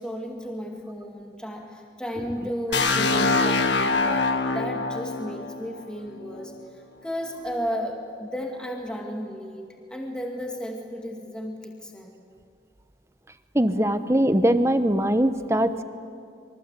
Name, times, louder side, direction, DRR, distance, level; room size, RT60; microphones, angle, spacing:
voice 1, 0.0-6.5 7.0-12.1, equal, 5° left, 0 dB, 2.2 m, -34 dB
sound 1, 2.7-6.6, left 3 dB, 85° left, 1.7 m, -24 dB
voice 2, 13.5-15.8, right 1 dB, 15° right, 10 dB, 1.0 m, -21 dB
26.5 x 23.0 x 8.3 m, 2.4 s
head